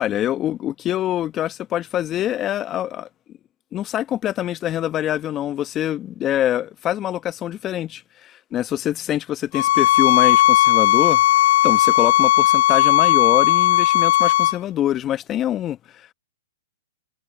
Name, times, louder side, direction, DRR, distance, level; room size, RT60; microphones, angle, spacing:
voice 1, 0.0-3.1 3.7-11.2 11.6-16.1, left 12 dB, 25° left, 1.3 m, -25 dB
sound 1, 9.5-14.6, left 15 dB, 55° left, 0.5 m, -16 dB
hypercardioid pair, 120°, 0 cm